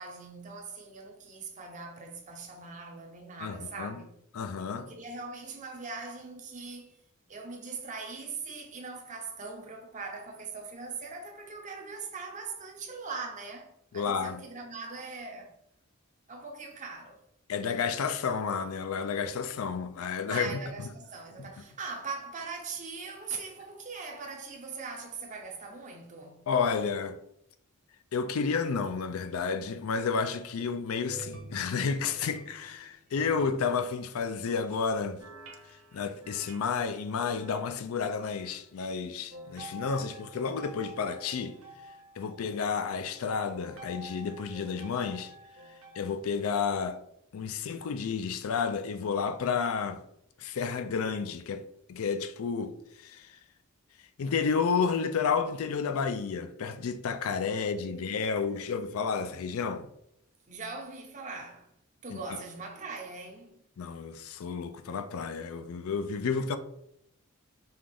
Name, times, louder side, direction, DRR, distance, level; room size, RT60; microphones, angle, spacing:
voice 1, 0.0-4.1 4.8-7.0 7.3-15.5 16.3-17.2 20.2-26.4 57.4-58.7 60.5-61.7 62.0-63.6, right 4 dB, 35° right, 0.7 m, -41 dB
voice 2, 3.4-4.0 4.3-4.9 13.9-14.4 17.5-20.6 21.4-21.5 26.5-27.2 28.1-35.2 35.9-41.6 42.2-45.3 46.0-47.0 47.3-50.0 50.4-53.4 54.2-59.9 62.1-62.4 63.8-66.6, left 5 dB, 80° left, 0.4 m, -31 dB
sound 1, 30.7-34.6 35.2-37.8 38.3-38.6 39.3-46.0, right 1 dB, 80° right, 1.0 m, -49 dB
5.4 x 2.5 x 3.4 m
head